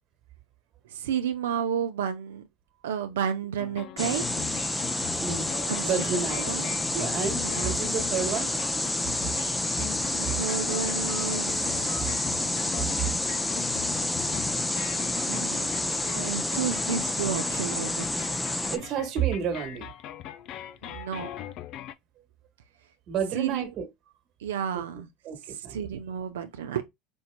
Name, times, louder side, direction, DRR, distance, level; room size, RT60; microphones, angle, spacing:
voice 1, 0.9-2.4 2.8-4.3 5.7-6.6 7.4-7.8 10.1-12.2 15.3-15.7 16.1-18.1 20.8-21.3 23.3-23.7 24.4-25.1 25.7-26.8, right 8 dB, 85° right, 0.6 m, -32 dB
sound 1, 3.6-21.9, left 11 dB, 55° left, 0.5 m, -40 dB
sound 2, 4.0-18.8, left 2 dB, 10° left, 0.6 m, -29 dB
voice 2, 5.2-5.5 5.8-8.5 18.7-19.9 23.1-23.9 24.7-24.8 25.2-25.8, right 7 dB, 50° right, 1.5 m, -31 dB
5.4 x 2.9 x 2.2 m
hypercardioid pair, 85°, 0 cm